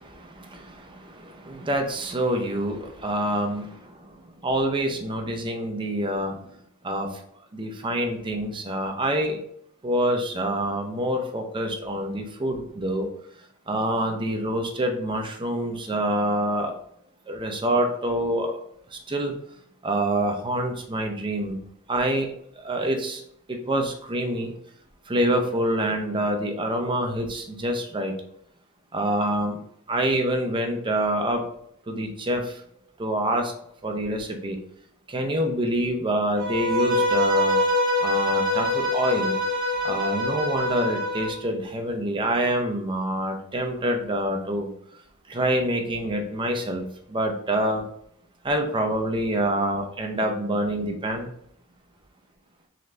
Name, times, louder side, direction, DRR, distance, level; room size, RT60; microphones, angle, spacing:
voice 1, 0.2-3.8 4.4-6.4 6.8-7.1 7.5-9.4 9.8-13.1 13.7-16.7 17.3-18.5 18.9-19.3 19.8-21.6 21.9-22.3 22.6-23.2 23.5-24.5 25.1-28.1 28.9-29.6 29.9-31.4 31.9-32.6 33.0-33.5 33.8-34.6 35.1-37.6 38.0-39.4 39.8-44.7 45.3-47.9 48.4-51.3, right 1 dB, 20° right, 3 dB, 0.6 m, -26 dB
Bowed string instrument, 36.4-41.4, left 1 dB, 55° right, 1.2 m, -24 dB
3.8 x 3.2 x 3.2 m, 0.70 s
head